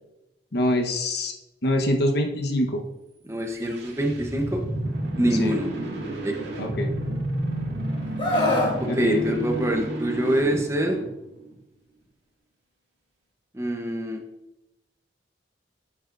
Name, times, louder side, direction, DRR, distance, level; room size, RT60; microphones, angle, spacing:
voice 1, 0.5-1.3 1.6-2.8 5.4-5.5 6.6-6.9 8.9-9.4, left 1 dB, 60° left, 4 dB, 1.1 m, -25 dB
voice 2, 3.2-4.6 5.2-5.7 6.2-6.4 8.8-11.0 13.5-14.2, equal, 15° right, 3 dB, 0.9 m, -25 dB
sound 1, 3.4-11.6, right 1 dB, 70° right, 2.0 m, -31 dB
Screaming, 8.2-8.8 10.2-10.5, left 1 dB, 25° left, 1.5 m, -23 dB
11.0 x 7.3 x 2.6 m, 0.95 s
head